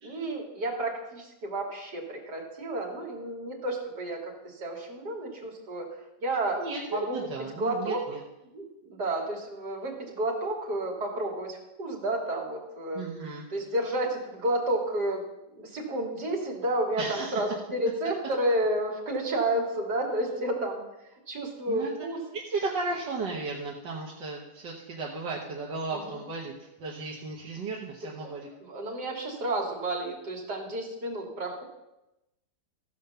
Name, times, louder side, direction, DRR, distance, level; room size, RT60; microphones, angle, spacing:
voice 1, 0.0-6.6 6.9-7.2 7.6-8.0 8.5-13.0 13.5-20.8 21.3-22.2 26.1-26.2 28.2-28.3 28.6-31.6, right 1 dB, 65° right, 0 dB, 3.0 m, -31 dB
voice 2, 6.6-8.2 12.9-13.4 17.0-17.4 21.7-21.9 22.3-28.5, right 3 dB, 85° right, -2 dB, 1.9 m, -35 dB
15.0 x 5.2 x 6.8 m, 0.94 s
omnidirectional pair, 1.9 m